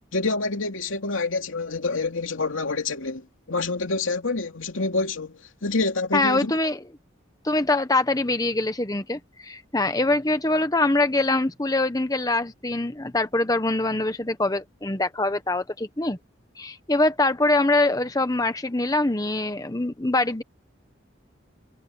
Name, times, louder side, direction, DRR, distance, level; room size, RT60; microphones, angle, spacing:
voice 1, 0.1-6.6, left 3 dB, 85° left, 2.7 m, -27 dB
voice 2, 6.1-6.8 7.4-16.2 16.6-20.4, left 2 dB, 20° left, 1.0 m, -24 dB
head